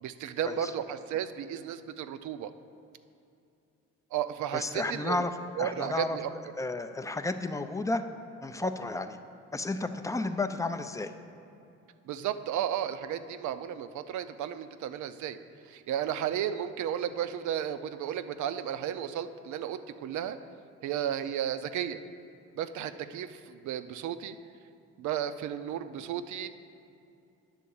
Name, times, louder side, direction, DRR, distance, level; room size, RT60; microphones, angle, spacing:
voice 1, 0.0-2.5 4.1-5.2 5.6-6.3 12.0-15.4 15.6-20.4 20.8-22.0 22.5-24.4 25.0-26.5, right 10 dB, 75° right, 11 dB, 0.5 m, -33 dB
voice 2, 4.5-5.3 5.6-6.2 6.6-8.0 8.4-9.2 9.5-11.1, left 2 dB, 10° left, 8 dB, 0.4 m, -32 dB
9.8 x 3.7 x 7.0 m, 2.6 s
cardioid pair, 90°, 30 cm